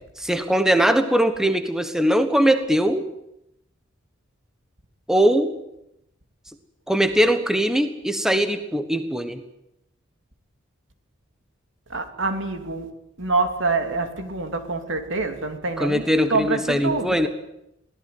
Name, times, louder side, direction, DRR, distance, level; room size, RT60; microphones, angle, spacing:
voice 1, 0.2-3.0 5.1-5.5 6.9-9.4 15.8-17.3, equal, 5° right, 8 dB, 1.4 m, -21 dB
voice 2, 11.9-12.9 13.2-16.0 16.3-17.3, right 3 dB, 65° right, 6 dB, 3.1 m, -26 dB
23.5 x 18.0 x 9.5 m, 0.84 s
head